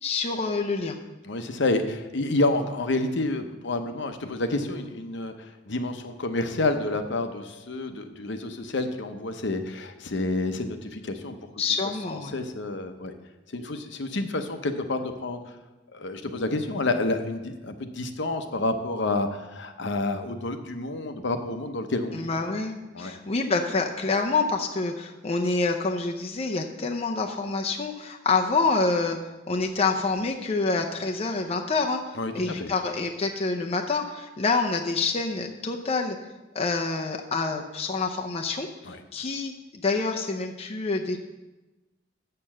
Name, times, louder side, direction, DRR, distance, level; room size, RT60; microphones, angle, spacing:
voice 1, 0.0-1.0 11.6-12.3 22.1-29.2 29.5-36.2 36.5-38.7 39.1-41.2, left 3 dB, 30° left, 2 dB, 0.6 m, -27 dB
voice 2, 1.2-11.4 12.1-13.1 13.5-15.4 15.9-22.3 22.9-23.1 32.2-32.7 38.8-39.0, left 2 dB, 65° left, 7 dB, 0.8 m, -29 dB
6.8 x 6.6 x 7.4 m, 1.1 s
head